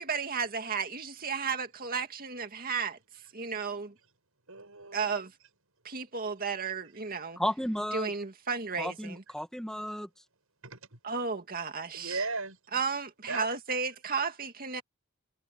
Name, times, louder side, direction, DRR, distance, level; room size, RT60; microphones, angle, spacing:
voice 1, 0.0-3.0 3.3-3.9 4.9-5.3 5.8-7.4 7.9-9.2 11.0-12.2 12.7-14.8, right 5 dB, 40° right, 2.2 m, -33 dB
voice 2, 4.5-5.1 10.6-11.0 11.9-12.6 13.3-13.5, right 3 dB, 70° right, 7.9 m, -36 dB
voice 3, 7.4-8.1 8.8-10.1, equal, 5° left, 2.1 m, -33 dB
head